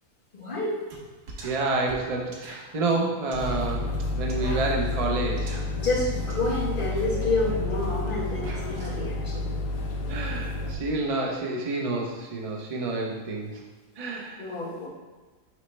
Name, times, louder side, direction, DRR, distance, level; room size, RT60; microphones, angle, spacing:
voice 1, 0.3-0.8 5.8-9.5 14.4-14.9, left 2 dB, 35° left, -6 dB, 1.6 m, -29 dB
sound 1, 0.9-1.0 1.3-8.9, right 2 dB, 80° right, 1.6 m, -43 dB
voice 2, 1.4-3.9 4.2-5.5 10.1-13.5 14.0-14.5, right 3 dB, 55° right, -1 dB, 0.4 m, -29 dB
sound 2, 3.3-10.7, left 2 dB, 75° left, 1.3 m, -30 dB
6.2 x 5.2 x 3.2 m, 1.3 s
omnidirectional pair, 1.7 m